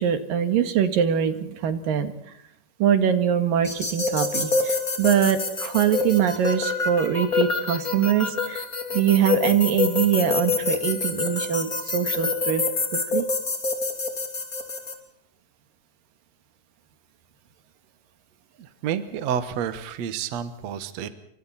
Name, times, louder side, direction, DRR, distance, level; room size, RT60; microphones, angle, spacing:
voice 1, 0.0-2.1 2.8-8.6 8.9-12.6 12.9-13.2, right 9 dB, 85° right, 9 dB, 3.4 m, -23 dB
sound 1, 3.6-14.9, left 4 dB, 25° left, 3.3 m, -27 dB
voice 2, 18.6-21.1, right 8 dB, 60° right, 11 dB, 2.4 m, -29 dB
28.5 x 25.0 x 4.3 m, 0.75 s
omnidirectional pair, 3.9 m